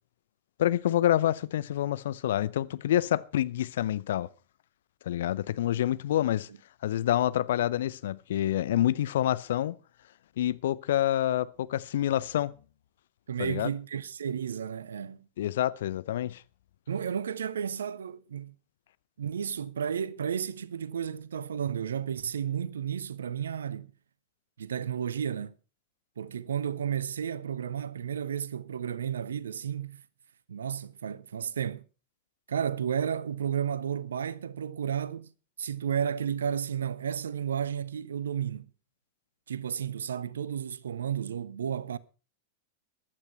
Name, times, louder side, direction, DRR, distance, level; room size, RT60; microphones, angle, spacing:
voice 1, 0.6-4.3 5.1-6.5 6.8-9.8 10.4-12.5 13.4-13.7 15.4-16.4, left 12 dB, 60° left, 0.6 m, -27 dB
voice 2, 13.3-15.2 16.9-18.5 19.2-23.9 24.6-25.5 26.2-30.0 30.5-31.8 32.5-35.3 35.6-38.7 39.5-42.0, right 8 dB, 65° right, 0.7 m, -32 dB
15.0 x 12.0 x 4.5 m
figure-of-eight pair, 90°, 0 cm